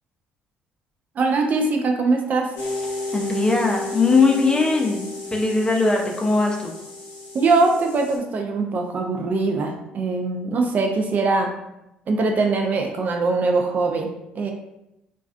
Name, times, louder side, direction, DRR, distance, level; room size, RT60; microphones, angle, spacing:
voice 1, 1.2-2.5 7.3-11.5 12.1-14.1 14.4-14.5, right 3 dB, 45° right, 2 dB, 0.4 m, -22 dB
sound 1, 2.6-8.2, left 2 dB, 75° left, 0.7 m, -33 dB
voice 2, 3.1-5.0 5.3-6.7, left 3 dB, 20° left, 1 dB, 0.6 m, -20 dB
2.3 x 2.3 x 2.3 m, 0.87 s
hypercardioid pair, 60°, 4 cm